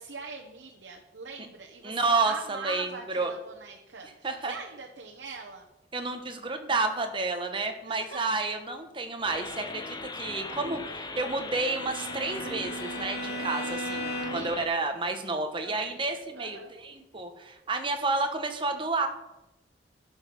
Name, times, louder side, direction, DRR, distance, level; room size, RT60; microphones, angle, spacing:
voice 1, 0.0-5.7 7.9-8.2 14.3-14.7 15.6-16.7, right 4 dB, 75° right, 0 dB, 1.1 m, -42 dB
voice 2, 1.8-3.3 4.2-4.5 5.9-19.1, right 3 dB, 30° right, 6 dB, 1.1 m, -30 dB
sound 1, 9.2-14.7, left 3 dB, 25° left, 0.6 m, -39 dB
Bowed string instrument, 11.5-14.6, equal, 70° left, 2.4 m, -37 dB
11.5 x 6.3 x 5.5 m, 0.96 s
head